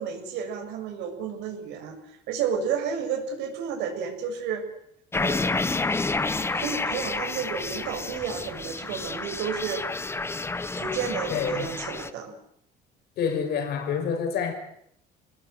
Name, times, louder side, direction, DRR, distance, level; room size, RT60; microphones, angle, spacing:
voice 1, 0.0-2.0 2.3-4.7 5.2-5.8 6.5-9.9 10.8-12.3, right 7 dB, 85° right, 7.0 m, -31 dB
sound 1, 5.1-12.1, left 3 dB, 15° left, 1.1 m, -30 dB
voice 2, 11.3-11.7 13.2-14.5, left 6 dB, 70° left, 5.9 m, -27 dB
28.0 x 20.0 x 8.0 m
cardioid pair, 130°, 18 cm